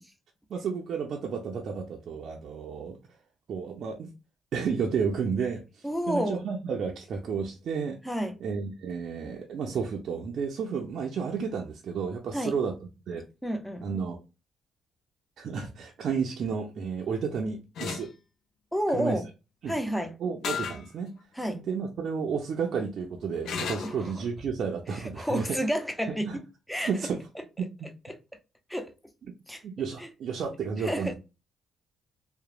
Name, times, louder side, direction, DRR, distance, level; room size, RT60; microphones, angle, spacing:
voice 1, 0.5-3.0 3.5-4.1 4.5-8.0 8.4-12.7 13.1-13.3 13.8-14.2 15.4-18.1 18.9-19.2 19.6-19.7 20.2-21.1 21.5-25.6 26.3-26.4 26.8-27.2 27.6-27.7 29.6-31.1, right 6 dB, 65° right, 0.4 m, -32 dB
voice 2, 5.8-6.5 8.0-8.4 12.3-12.5 13.4-13.8 18.7-19.3 19.7-20.2 21.4-21.7 23.8-24.2 24.9-26.4 26.7-26.9 28.1-28.2 28.7-28.9 29.5-29.6 30.0-30.1 30.8-31.1, equal, 5° left, 0.5 m, -30 dB
sound 1, 17.8-18.1 20.4-20.8 21.4-21.5 23.5-24.0, left 6 dB, 70° left, 0.4 m, -33 dB
2.9 x 2.0 x 2.3 m
cardioid pair, 90°, 0 cm